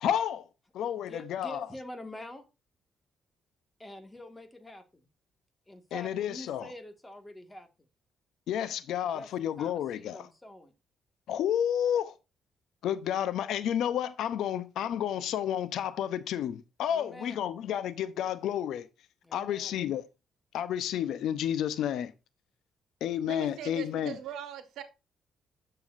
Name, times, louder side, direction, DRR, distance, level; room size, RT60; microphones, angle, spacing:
voice 1, 0.0-0.4 0.7-1.7 5.9-6.7 8.5-10.3 11.3-12.1 12.8-18.9 19.3-20.0 20.5-22.1 23.0-24.2, left 10 dB, 80° left, 0.7 m, -31 dB
voice 2, 0.9-2.4 3.8-5.1 5.7-7.7 9.1-9.3 9.6-10.7 16.9-17.4 19.2-19.8, left 1 dB, 15° left, 1.8 m, -46 dB
voice 3, 23.2-24.8, right 9 dB, 85° right, 1.4 m, -40 dB
10.5 x 6.9 x 2.6 m
cardioid pair, 90°, 0 cm